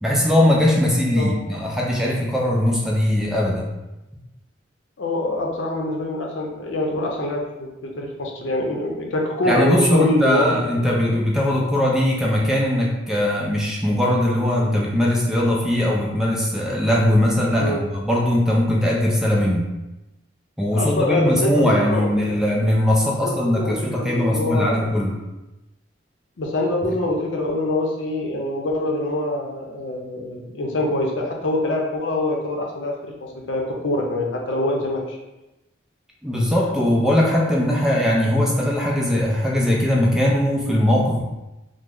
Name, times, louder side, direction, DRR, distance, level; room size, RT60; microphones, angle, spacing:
voice 1, 0.0-3.7 9.4-19.7 20.6-25.2 36.2-41.2, left 1 dB, 5° right, -3 dB, 0.4 m, -20 dB
voice 2, 5.0-10.5 10.8-10.9 17.6-17.8 20.8-22.1 23.2-24.9 26.4-35.2, left 1 dB, 85° left, 0 dB, 0.6 m, -24 dB
3.0 x 2.0 x 3.6 m, 1.0 s
head